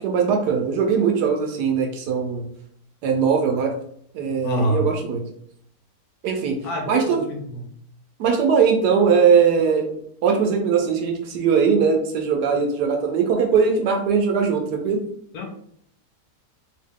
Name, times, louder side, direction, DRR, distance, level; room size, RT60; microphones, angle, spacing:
voice 1, 0.0-2.4 3.0-3.7 4.1-5.2 6.2-6.6 6.9-7.2 8.2-15.0, right 6 dB, 75° right, 3 dB, 1.1 m, -20 dB
voice 2, 4.4-4.9 6.6-7.6 15.3-15.5, equal, 70° left, 2 dB, 1.1 m, -26 dB
2.8 x 2.6 x 3.5 m, 0.68 s
omnidirectional pair, 1.9 m